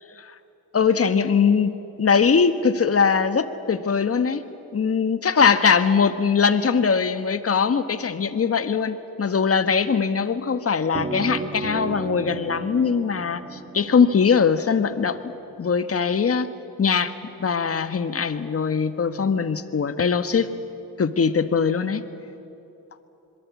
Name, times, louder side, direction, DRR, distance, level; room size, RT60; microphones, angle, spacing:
voice 1, 0.7-4.4 4.7-15.3 15.6-16.5 16.8-17.1 17.4-20.5 21.0-22.0, left 6 dB, 40° left, 10 dB, 1.7 m, -21 dB
sound 1, 10.9-15.6, right 3 dB, 30° right, 3.5 m, -34 dB
26.5 x 22.5 x 8.6 m, 2.8 s
cardioid pair, 70°, 36 cm